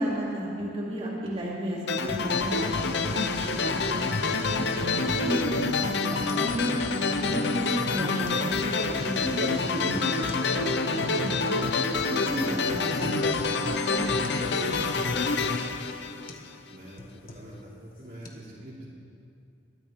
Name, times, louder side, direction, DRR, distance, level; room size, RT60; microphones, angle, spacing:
voice 1, 0.0-4.0 4.5-6.7 7.1-11.7 12.1-13.4 13.9-15.1, equal, 35° right, -7 dB, 3.9 m, -33 dB
sound 1, 1.9-16.7, left 4 dB, 65° left, 0.8 m, -27 dB
sound 2, 3.0-3.5 3.8-3.9 4.2-4.4 4.8-5.6 6.1-6.5 6.8-7.5 8.3-8.4 8.8-9.5 9.8-9.9 10.3-10.5 10.8-11.5 11.8-11.9 12.3-12.5 12.8-13.5 13.8-14.0 14.2-14.4 14.7-15.4 15.8-16.0 16.3-16.5 16.8-17.6 17.9-18.3, left 1 dB, 50° left, 1.4 m, -46 dB
voice 2, 16.7-18.8, right 1 dB, 55° right, -9 dB, 3.4 m, -46 dB
22.0 x 13.0 x 3.7 m, 2.5 s
head